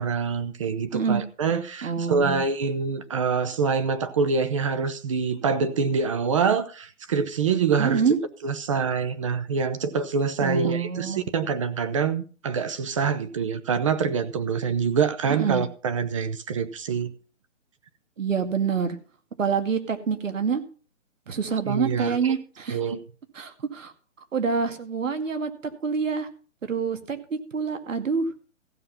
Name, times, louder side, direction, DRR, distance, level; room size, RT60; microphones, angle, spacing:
voice 1, 0.0-8.0 8.4-17.1 21.7-22.3 22.7-23.0, right 5 dB, 25° right, 0.7 m, -25 dB
voice 2, 1.8-2.4 7.8-8.2 10.4-11.2 15.3-15.6 18.2-19.0 19.4-20.6 21.3-22.8 23.3-23.9 24.3-25.5 25.8-26.3 26.6-28.3, right 6 dB, 75° right, 2.3 m, -26 dB
15.0 x 7.6 x 5.6 m
hypercardioid pair, 160°, 39 cm